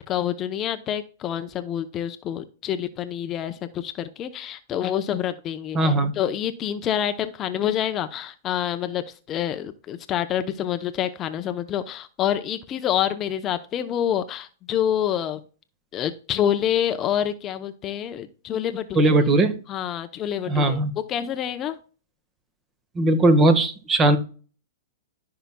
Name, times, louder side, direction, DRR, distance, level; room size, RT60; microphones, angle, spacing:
voice 1, 0.1-15.4 15.9-19.1 19.7-21.8, left 10 dB, 30° left, 9 dB, 0.7 m, -27 dB
voice 2, 5.7-6.1 19.0-19.5 20.5-20.9 22.9-24.2, right 2 dB, 20° right, 10 dB, 1.4 m, -18 dB
14.5 x 5.7 x 2.2 m, 0.38 s
hypercardioid pair, 130°, 0 cm